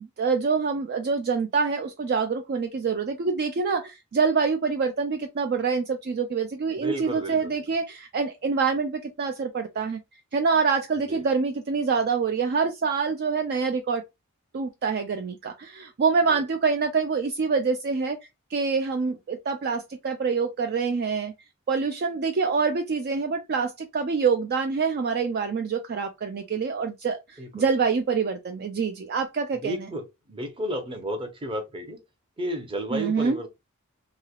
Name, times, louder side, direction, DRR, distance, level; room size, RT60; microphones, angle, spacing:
voice 1, 0.0-10.0 10.3-14.0 14.5-18.2 18.5-21.3 21.7-29.9 32.9-33.4, right 5 dB, 45° right, 0.4 m, -26 dB
voice 2, 6.8-7.5 11.1-11.2 16.3-16.4 27.4-27.6 29.5-32.0 32.4-33.5, equal, 25° right, 0.8 m, -32 dB
3.1 x 2.8 x 2.3 m
head